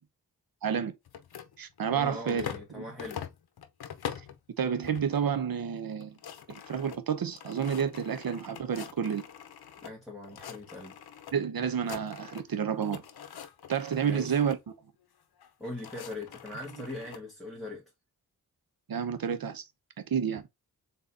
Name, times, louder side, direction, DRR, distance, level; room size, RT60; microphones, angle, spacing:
voice 1, 0.6-0.9 1.6-2.4 2.8-2.9 4.6-6.2 6.5-9.2 11.3-13.0 13.7-14.6 18.9-19.6 20.1-20.4, right 7 dB, 70° right, 0.8 m, -30 dB
sound 1, 1.1-2.7 3.0-4.4 4.8-5.3 5.6-5.7 5.9-9.9 10.2-11.3 11.6-12.5 12.8-14.6 15.4-17.2, left 8 dB, 90° left, 0.7 m, -44 dB
voice 2, 1.9-3.2 9.8-10.9 14.0-14.4 15.6-17.9, left 2 dB, ahead, 1.8 m, -41 dB
4.0 x 3.9 x 2.7 m
cardioid pair, 55°, 37 cm